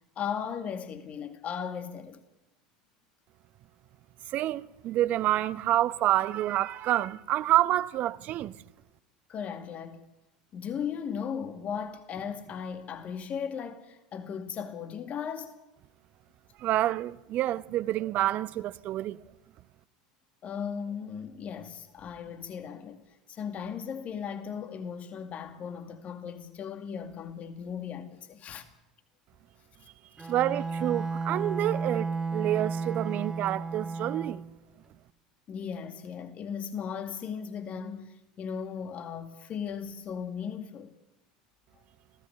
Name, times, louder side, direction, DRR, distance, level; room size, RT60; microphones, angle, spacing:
voice 1, 0.2-2.2 9.3-10.0 10.5-15.6 20.4-28.7 30.2-30.3 35.5-40.9, left 7 dB, 40° left, 2.1 m, -37 dB
voice 2, 4.3-8.5 16.6-19.2 30.3-34.4, right 13 dB, 50° right, 0.9 m, -28 dB
Bowed string instrument, 30.2-34.5, right 4 dB, 15° right, 4.3 m, -33 dB
30.0 x 17.0 x 6.9 m
figure-of-eight pair, 75°, 4 cm